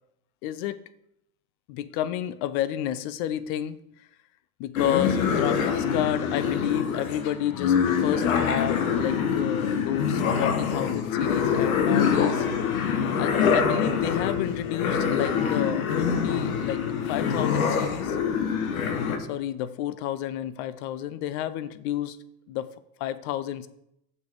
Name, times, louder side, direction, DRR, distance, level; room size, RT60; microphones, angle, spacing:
voice 1, 0.4-0.8 1.7-3.8 4.6-12.5 13.2-16.8 17.1-18.2 19.2-22.2 22.5-22.7 23.0-23.7, left 12 dB, 50° left, 15 dB, 0.7 m, -30 dB
sound 1, 4.8-19.2, left 6 dB, 70° left, 1.2 m, -25 dB
6.7 x 5.8 x 4.9 m, 0.79 s
hypercardioid pair, 80°, 43 cm